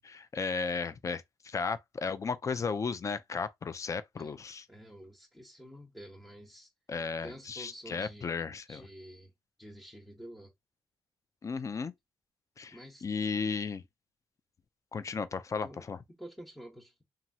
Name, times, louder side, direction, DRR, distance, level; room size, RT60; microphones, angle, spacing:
voice 1, 0.0-4.6 6.9-8.8 11.4-11.9 12.6-13.8 14.9-16.0, left 5 dB, 30° left, 0.4 m, -35 dB
voice 2, 4.7-6.7 7.2-8.4 8.7-9.3 9.6-10.5 12.7-13.0 15.6-17.0, equal, ahead, 0.9 m, -49 dB
3.0 x 2.3 x 2.7 m
cardioid pair, 90°, 10 cm